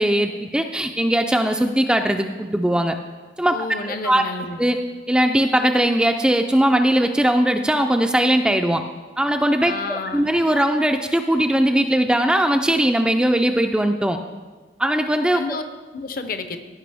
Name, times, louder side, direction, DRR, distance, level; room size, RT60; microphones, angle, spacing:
voice 1, 0.0-3.0 3.4-3.6 4.0-4.2 4.6-4.8 5.1-8.8 9.2-14.2 14.8-15.4, right 1 dB, 5° right, 6 dB, 0.3 m, -19 dB
voice 2, 3.5-4.6 9.6-10.3 15.3-15.6 15.9-16.6, left 3 dB, 55° left, 9 dB, 0.6 m, -30 dB
15.0 x 5.4 x 3.4 m, 1.3 s
head